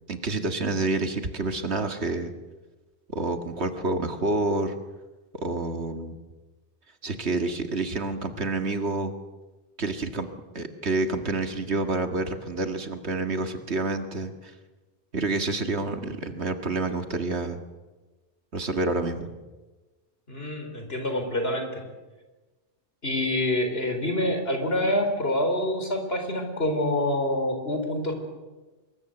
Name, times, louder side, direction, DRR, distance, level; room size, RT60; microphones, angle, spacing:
voice 1, 0.1-2.3 3.1-4.7 5.4-6.2 7.0-9.1 9.8-14.5 15.1-17.6 18.5-19.3, right 3 dB, 70° right, 7 dB, 2.2 m, -28 dB
voice 2, 20.3-21.8 23.0-28.1, left 1 dB, 60° left, 5 dB, 4.5 m, -26 dB
25.5 x 22.0 x 7.9 m, 1.2 s
omnidirectional pair, 1.1 m